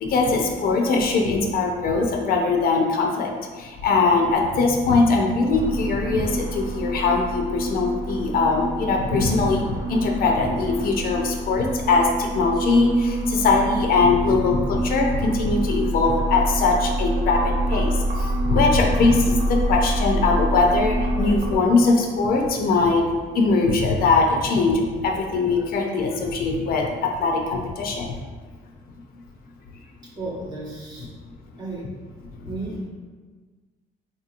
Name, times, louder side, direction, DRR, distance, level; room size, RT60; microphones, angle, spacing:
voice 1, 0.0-3.3 3.6-23.0 23.3-28.2 32.4-32.5, left 3 dB, 60° left, 1 dB, 0.5 m, -21 dB
sound 1, 5.5-21.6, right 1 dB, 70° right, 0.8 m, -26 dB
voice 2, 30.0-31.1 31.6-31.8 32.4-32.9, right 2 dB, 25° right, -4 dB, 1.0 m, -33 dB
4.0 x 2.8 x 2.5 m, 1.4 s
cardioid pair, 110°, 17 cm